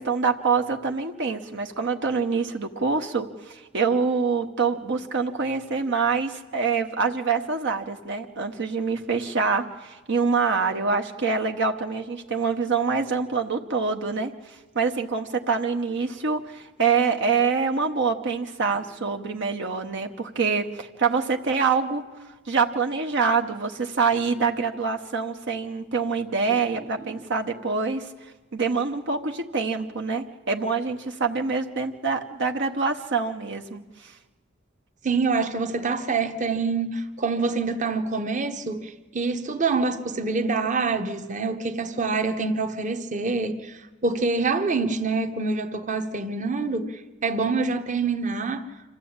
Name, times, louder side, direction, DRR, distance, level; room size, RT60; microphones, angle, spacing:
voice 1, 0.0-22.0 22.5-34.2, right 5 dB, 60° right, 1.0 m, -25 dB
voice 2, 35.0-48.6, right 4 dB, 40° right, 1.1 m, -26 dB
26.0 x 14.0 x 8.7 m
head